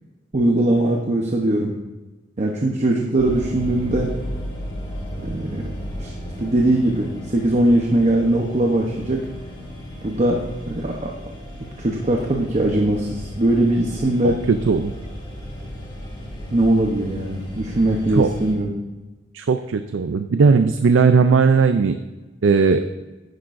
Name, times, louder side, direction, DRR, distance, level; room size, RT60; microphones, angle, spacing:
voice 1, 0.3-1.7 2.4-4.1 5.2-5.7 6.0-6.1 6.4-9.2 10.0-11.1 11.8-14.4 16.5-18.7, right 1 dB, 40° right, 1 dB, 0.8 m, -20 dB
sound 1, 3.2-18.5, equal, 30° left, 2.9 m, -34 dB
voice 2, 14.2-14.9 18.1-18.3 19.3-22.0 22.4-22.9, right 5 dB, 80° right, 9 dB, 0.4 m, -17 dB
10.5 x 10.5 x 2.6 m, 1.2 s
head